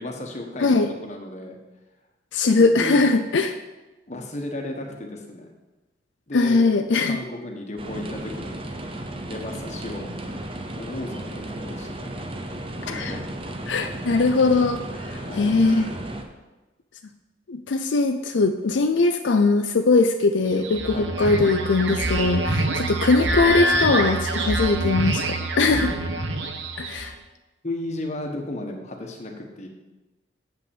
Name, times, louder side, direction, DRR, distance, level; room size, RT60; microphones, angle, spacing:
voice 1, 0.0-1.6 2.6-3.0 4.1-5.5 6.3-6.6 7.0-8.6 9.2-10.1 10.7-12.2 12.9-13.2 15.1-15.5 20.9-21.1 25.7-26.1 27.6-29.7, left 1 dB, 40° left, 2 dB, 1.3 m, -34 dB
voice 2, 2.3-3.6 6.3-7.2 12.9-13.1 13.7-14.8 15.3-15.9 17.5-25.9 26.8-27.1, left 3 dB, 85° left, 7 dB, 0.5 m, -20 dB
sound 1, 7.8-16.2, right 1 dB, 30° right, 0.8 m, -34 dB
sound 2, 20.5-27.1, right 2 dB, 90° right, 1.0 m, -25 dB
7.7 x 5.6 x 7.2 m, 1.1 s
head